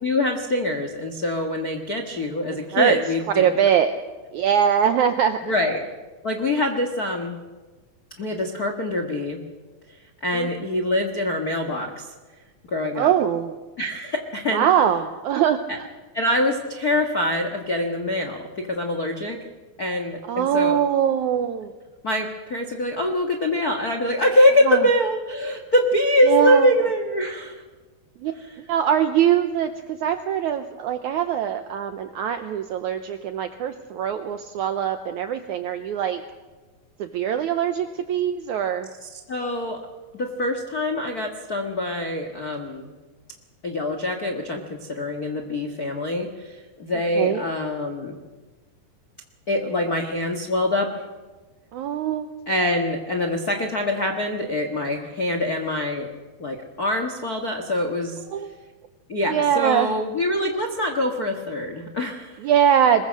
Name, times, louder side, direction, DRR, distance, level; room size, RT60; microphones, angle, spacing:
voice 1, 0.0-3.5 5.4-5.8 6.2-7.4 8.2-9.4 9.9-10.0 10.2-12.1 12.7-13.1 13.8-14.7 16.1-19.4 19.8-20.8 22.0-27.6 28.4-28.5 39.0-39.8 40.1-42.9 43.6-48.2 49.5-51.1 52.5-56.1 56.4-58.5 59.1-62.4, left 1 dB, 60° left, 5 dB, 0.9 m, -24 dB
voice 2, 3.4-3.9 4.3-5.5 10.3-10.5 13.0-13.5 14.5-15.9 20.3-21.7 24.7-24.8 26.3-26.7 28.2-36.2 37.0-38.9 47.2-47.4 51.7-52.3 58.3-58.5 59.3-59.9 62.4-63.0, right 9 dB, 80° right, 9 dB, 1.7 m, -22 dB
23.0 x 21.0 x 6.4 m, 1.3 s
omnidirectional pair, 4.4 m